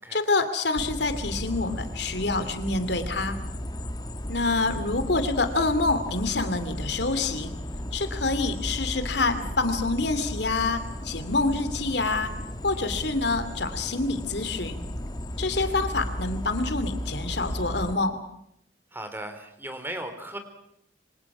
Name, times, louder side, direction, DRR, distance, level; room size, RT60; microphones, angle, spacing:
voice 1, 0.1-3.4 4.3-7.5 7.9-12.3 12.6-14.8 15.4-18.2, left 3 dB, 65° left, 10 dB, 2.6 m, -27 dB
sound 1, 0.8-18.0, equal, 20° left, 1.2 m, -35 dB
voice 2, 18.9-20.4, right 1 dB, 10° right, 7 dB, 3.8 m, -37 dB
27.0 x 25.0 x 6.1 m, 0.77 s
head